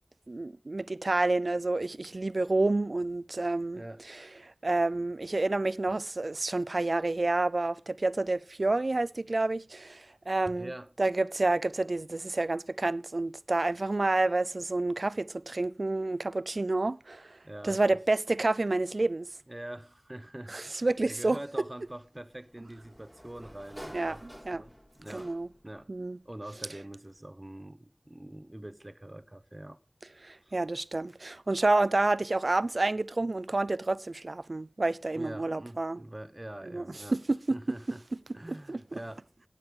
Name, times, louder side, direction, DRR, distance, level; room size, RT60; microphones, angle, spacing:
voice 1, 0.3-3.8 4.1-10.7 11.0-17.4 17.6-19.3 20.5-21.4 23.9-24.2 24.5-24.6 25.1-25.5 25.9-26.2 30.2-36.0 36.6-36.8 37.1-37.6 38.5-39.0, right 2 dB, 70° right, 0.5 m, -29 dB
voice 2, 3.7-4.0 10.5-10.9 17.4-17.8 19.5-24.3 24.5-25.3 25.6-25.9 26.2-29.8 30.4-30.6 35.1-37.2 37.5-38.0 38.3-39.3, right 1 dB, 30° right, 0.9 m, -44 dB
Sliding door, 21.8-25.7, equal, 10° left, 3.4 m, -50 dB
16.0 x 9.8 x 3.8 m
wide cardioid pair, 50°, 0 cm